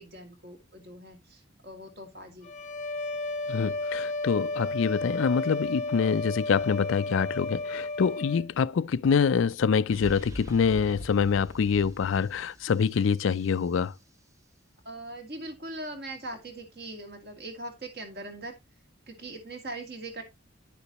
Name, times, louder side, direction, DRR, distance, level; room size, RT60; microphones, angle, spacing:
voice 1, 0.0-2.5 14.8-18.6 19.1-20.2, right 2 dB, 50° right, 2.3 m, -41 dB
sound 1, 2.4-8.5, left 2 dB, 35° left, 0.7 m, -33 dB
voice 2, 3.5-13.9, left 6 dB, 75° left, 0.4 m, -25 dB
sound 2, 9.9-13.7, equal, 15° right, 0.6 m, -43 dB
10.0 x 6.7 x 3.0 m
head